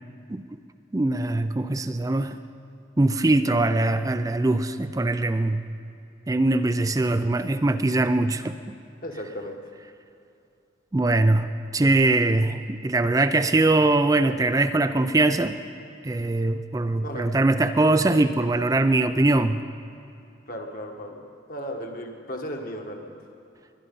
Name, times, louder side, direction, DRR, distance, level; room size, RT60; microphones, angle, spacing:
voice 1, 0.9-2.4 3.0-5.6 6.3-8.5 10.9-15.6 16.0-19.6, right 2 dB, 20° right, 10 dB, 0.4 m, -22 dB
voice 2, 9.0-9.6 17.0-17.3 20.5-23.1, equal, 50° left, 2 dB, 1.6 m, -35 dB
21.0 x 11.0 x 5.4 m, 2.7 s
head